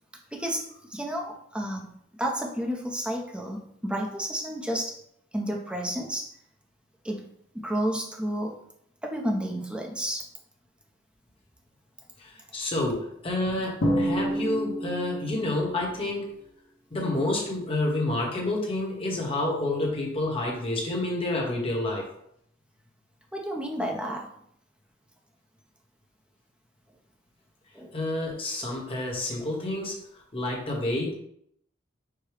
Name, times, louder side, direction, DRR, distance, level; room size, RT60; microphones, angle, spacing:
voice 1, 0.3-4.9 5.3-6.3 7.0-7.2 7.5-8.5 9.0-10.3 23.3-24.3 27.7-27.9, equal, 5° right, 0 dB, 0.6 m, -31 dB
voice 2, 12.2-16.4 16.9-22.1 27.9-31.1, left 2 dB, 30° left, -1 dB, 1.1 m, -29 dB
Drum, 13.8-15.5, equal, 60° left, 1.0 m, -27 dB
4.7 x 2.2 x 4.8 m, 0.70 s
head